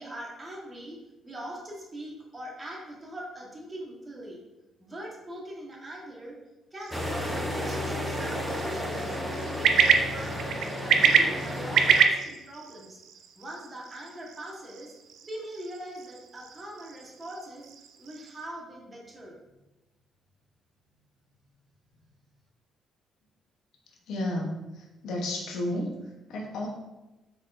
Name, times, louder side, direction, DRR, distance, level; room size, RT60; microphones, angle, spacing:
voice 1, 0.0-4.4 4.8-6.4 6.7-9.1 9.5-13.0 13.3-14.9 15.2-17.6 18.0-19.6, right 1 dB, 25° right, -2 dB, 1.2 m, -41 dB
sound 1, 6.8-18.5, right 6 dB, 80° right, 0.3 m, -28 dB
sound 2, 6.9-12.0, left 1 dB, 5° right, 0.7 m, -32 dB
voice 2, 24.1-26.7, left 1 dB, 80° left, 1 dB, 0.8 m, -32 dB
4.4 x 4.0 x 2.5 m, 1.0 s
cardioid pair, 90°, 0 cm